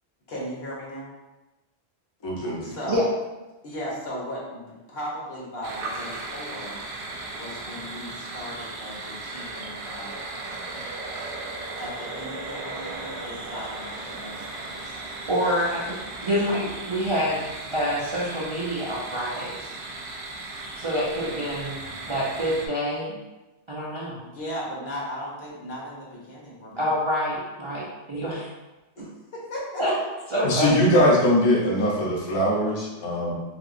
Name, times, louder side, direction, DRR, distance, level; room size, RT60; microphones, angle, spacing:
voice 1, 0.3-1.1 2.6-3.0 3.6-6.8 7.3-10.9 11.8-15.3 16.5-16.8 24.2-27.0 28.9-29.8 30.2-30.3, equal, 60° left, -5 dB, 1.1 m, -37 dB
voice 2, 2.2-2.7 30.4-33.3, left 1 dB, 30° left, -3 dB, 0.6 m, -21 dB
sound 1, 5.6-22.7, right 2 dB, 70° right, 0.8 m, -36 dB
voice 3, 15.3-16.0 16.2-17.5 17.7-19.7 20.7-23.2 23.7-24.2 26.8-28.5 29.0-29.1 29.8-29.9 30.3-30.8, equal, 40° right, -8 dB, 0.4 m, -27 dB
3.4 x 2.8 x 2.5 m, 1.1 s
omnidirectional pair, 1.2 m